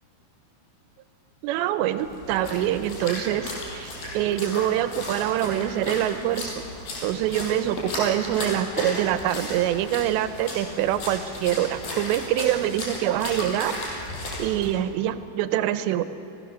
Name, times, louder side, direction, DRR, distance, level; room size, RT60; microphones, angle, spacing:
voice 1, 1.4-6.6 7.0-13.8 14.4-16.0, right 12 dB, 85° right, 11 dB, 3.0 m, -25 dB
Splash splatter, 2.0-14.7, left 1 dB, 55° left, 5.7 m, -35 dB
28.5 x 17.0 x 6.4 m, 2.9 s
omnidirectional pair, 5.1 m